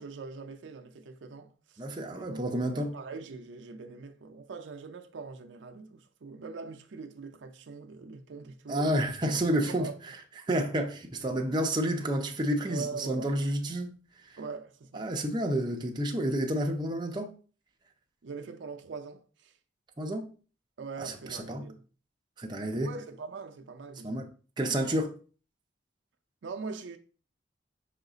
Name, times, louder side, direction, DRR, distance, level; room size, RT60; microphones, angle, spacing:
voice 1, 0.0-1.8 2.1-9.0 9.6-9.9 12.7-13.4 14.4-15.0 18.2-19.5 20.8-21.8 22.7-24.3 26.4-27.0, right 4 dB, 75° right, 0.5 m, -42 dB
voice 2, 1.8-2.9 8.7-10.2 10.5-13.9 14.2-14.4 14.9-17.3 20.0-20.3 21.0-21.7 22.4-22.9 24.0-24.3 24.6-25.1, right 1 dB, 25° right, 0.5 m, -30 dB
5.7 x 2.4 x 3.8 m
head